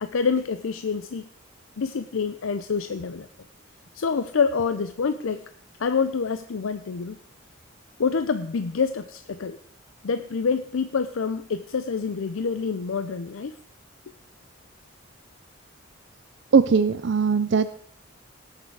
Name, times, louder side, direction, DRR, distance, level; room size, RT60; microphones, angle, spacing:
voice 1, 0.0-1.3 1.8-3.3 3.9-5.4 5.8-7.2 8.0-9.6 10.0-13.6, left 5 dB, 85° left, 11 dB, 0.5 m, -27 dB
voice 2, 16.5-17.7, right 5 dB, 60° right, 12 dB, 0.5 m, -20 dB
18.5 x 6.7 x 4.7 m, 0.64 s
head